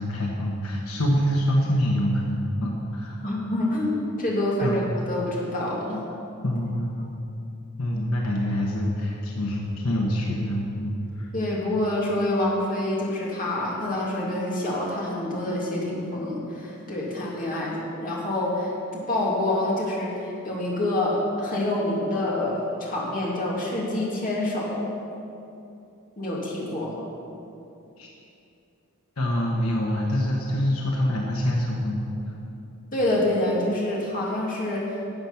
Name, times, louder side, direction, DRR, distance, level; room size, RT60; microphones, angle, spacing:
voice 1, 0.0-3.2 4.6-4.8 6.4-7.1 7.8-11.3 28.0-28.1 29.2-32.1, equal, 75° left, -1 dB, 1.2 m, -25 dB
voice 2, 3.2-6.0 11.3-24.8 26.2-27.1 32.9-35.1, left 1 dB, 40° left, -5 dB, 2.5 m, -27 dB
12.5 x 7.9 x 5.8 m, 2.7 s
head